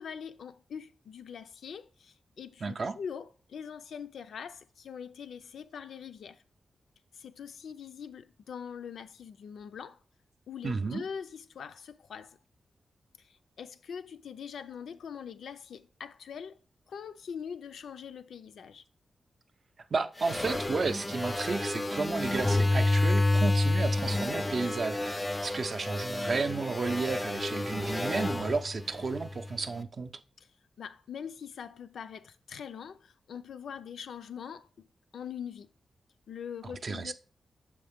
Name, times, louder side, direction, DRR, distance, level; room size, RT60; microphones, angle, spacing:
voice 1, 0.0-6.4 7.1-10.0 10.5-12.4 13.2-16.6 16.9-18.8 30.4-30.5 30.8-34.9 35.1-35.7 36.3-37.1, left 7 dB, 85° left, 0.4 m, -43 dB
voice 2, 2.6-3.0 10.6-11.0 19.9-30.2 36.6-37.1, right 4 dB, 45° right, 0.4 m, -32 dB
sound 1, 20.2-29.6, left 2 dB, 15° left, 0.3 m, -30 dB
6.2 x 4.7 x 3.5 m
wide cardioid pair, 120°, 0 cm